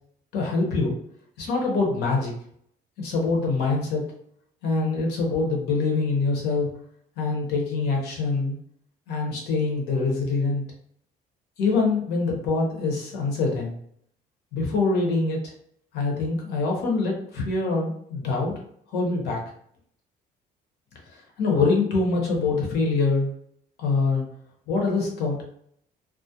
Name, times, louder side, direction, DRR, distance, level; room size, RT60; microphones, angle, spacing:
voice 1, 0.3-1.0 1.4-2.3 3.0-4.0 4.6-6.7 7.2-8.6 9.1-10.6 11.6-13.7 14.5-15.5 15.9-18.5 18.9-19.4 21.1-23.3 23.8-24.2 24.7-25.4, left 3 dB, 80° left, 0 dB, 0.9 m, -24 dB
2.4 x 2.1 x 2.7 m, 0.67 s
cardioid pair, 110°, 17 cm